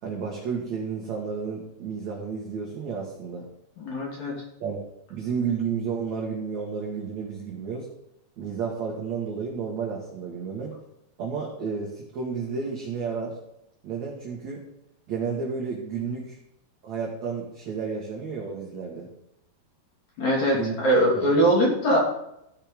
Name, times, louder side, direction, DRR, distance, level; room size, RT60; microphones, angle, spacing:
voice 1, 0.0-3.5 4.6-7.9 8.4-10.7 11.2-13.4 13.8-14.6 15.1-16.4 16.8-19.1 20.5-20.7 21.2-21.3, right 5 dB, 50° right, -3 dB, 2.5 m, -31 dB
voice 2, 3.8-4.4 20.2-22.0, right 1 dB, 45° left, -3 dB, 3.8 m, -22 dB
15.5 x 5.7 x 5.3 m, 0.81 s
omnidirectional pair, 5.0 m